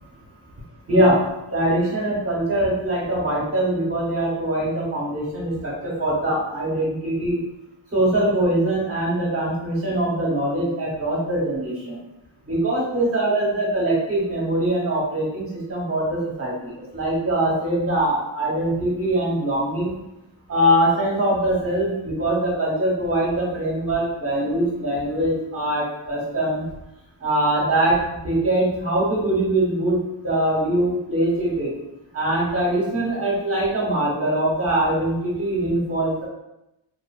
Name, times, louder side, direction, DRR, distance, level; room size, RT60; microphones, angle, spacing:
voice 1, 0.9-1.2 1.5-7.4 7.9-12.0 12.5-19.9 20.5-26.6 27.2-31.7 32.1-36.3, right 1 dB, 30° right, -5 dB, 0.9 m, -22 dB
2.9 x 2.4 x 2.3 m, 0.90 s
wide cardioid pair, 145°, 47 cm